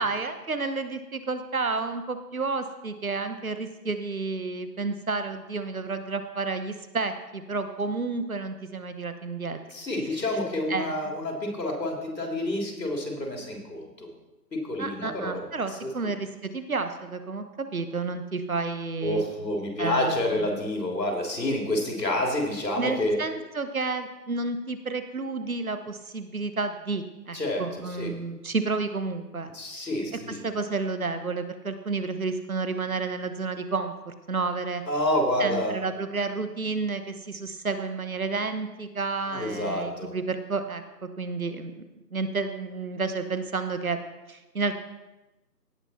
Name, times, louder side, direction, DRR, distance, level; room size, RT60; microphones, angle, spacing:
voice 1, 0.0-9.6 10.7-11.1 14.8-19.2 19.8-20.6 22.8-29.5 30.3-34.8 35.4-41.8 42.1-44.0 44.3-44.7, right 4 dB, 55° right, 9 dB, 1.1 m, -31 dB
voice 2, 9.7-14.1 14.5-15.4 15.8-15.9 19.0-23.2 27.3-28.1 29.5-30.4 34.9-35.8 39.3-40.1, left 1 dB, 75° left, 1 dB, 3.3 m, -28 dB
17.0 x 5.7 x 4.3 m, 1.0 s
figure-of-eight pair, 175°, 50 cm